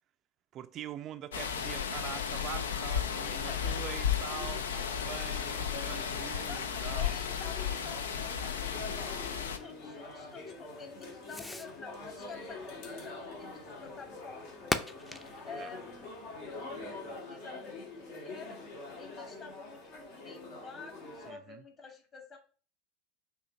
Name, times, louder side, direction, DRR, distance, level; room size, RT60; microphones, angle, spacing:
voice 1, 0.5-7.1 15.6-15.7 21.3-21.6, right 11 dB, 45° right, 0.4 m, -44 dB
sound 1, 1.3-9.6, left 8 dB, 75° left, 0.5 m, -34 dB
Fireworks, 2.6-17.2, left 1 dB, 10° left, 0.6 m, -46 dB
voice 2, 3.1-3.8 6.4-18.6 19.0-22.4, left 5 dB, 35° left, 2.2 m, -49 dB
sound 2, 4.3-21.3, left 2 dB, 60° left, 1.7 m, -46 dB
6.1 x 2.8 x 5.4 m
hypercardioid pair, 80°, 0 cm